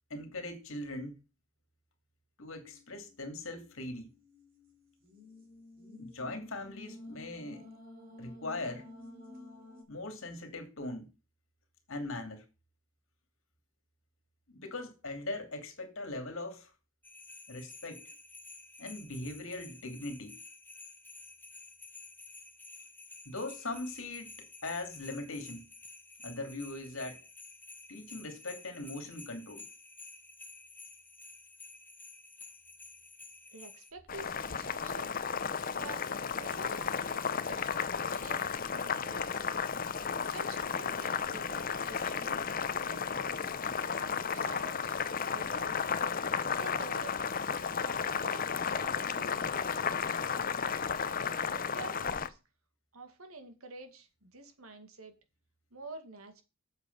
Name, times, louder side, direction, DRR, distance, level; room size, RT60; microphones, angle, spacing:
voice 1, 0.1-1.1 2.4-4.1 5.9-7.7 8.2-8.8 9.9-11.1 11.9-12.4 14.5-16.7 17.5-18.0 18.8-20.3 23.2-24.3 24.6-25.7 26.2-27.2 27.9-29.7, left 2 dB, 65° left, 2.6 m, -40 dB
sound 1, 2.7-9.8, left 2 dB, 40° right, 3.9 m, -51 dB
sound 2, 17.0-33.9, left 3 dB, 10° left, 0.9 m, -51 dB
voice 2, 33.5-35.2 35.7-39.5 40.3-42.4 42.8-43.5 43.9-45.0 45.3-45.8 46.5-47.2 47.6-49.9 51.5-52.4 52.9-55.1 55.7-56.4, right 3 dB, 75° right, 2.0 m, -48 dB
Boiling, 34.1-52.3, left 6 dB, 40° left, 0.6 m, -33 dB
8.3 x 7.2 x 5.4 m
head